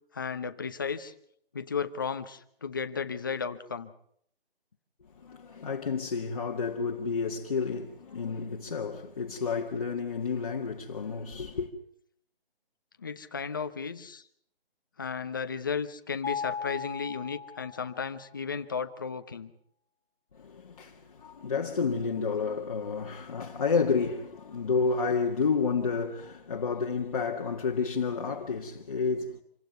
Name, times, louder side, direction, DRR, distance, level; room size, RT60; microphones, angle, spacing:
voice 1, 0.1-1.1 1.5-3.9 13.0-14.2 15.0-19.5, left 6 dB, 20° left, 0.9 m, -34 dB
voice 2, 5.2-11.7 20.4-29.4, left 5 dB, 35° left, 1.7 m, -30 dB
Mallet percussion, 16.2-18.2, left 6 dB, 85° left, 1.5 m, -37 dB
27.0 x 16.5 x 8.0 m
hypercardioid pair, 175°, 30 cm